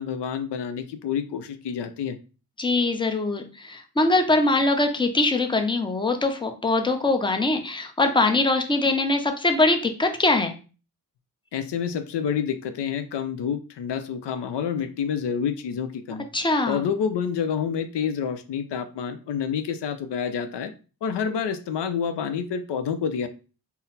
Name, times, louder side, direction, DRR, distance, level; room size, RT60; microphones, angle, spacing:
voice 1, 0.0-2.2 11.5-16.3 16.7-20.7 21.0-23.3, left 7 dB, 75° left, 9 dB, 0.5 m, -28 dB
voice 2, 2.6-10.5 16.3-16.8, left 2 dB, 10° left, 5 dB, 0.6 m, -22 dB
3.9 x 2.0 x 4.0 m, 0.35 s
cardioid pair, 50°, 41 cm